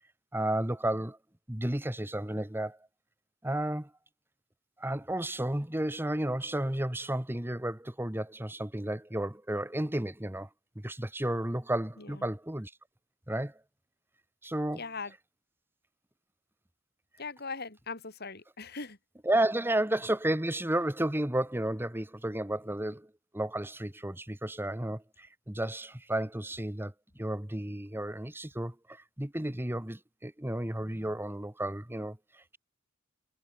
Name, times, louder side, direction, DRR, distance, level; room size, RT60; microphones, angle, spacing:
voice 1, 0.3-1.2 1.5-2.8 3.4-3.9 4.8-10.5 10.7-12.7 13.3-13.6 14.4-14.8 19.2-23.1 23.3-26.9 27.2-32.6, right 1 dB, 10° right, 1.3 m, -32 dB
voice 2, 14.7-15.1 17.2-19.0, left 4 dB, 50° left, 4.8 m, -40 dB
head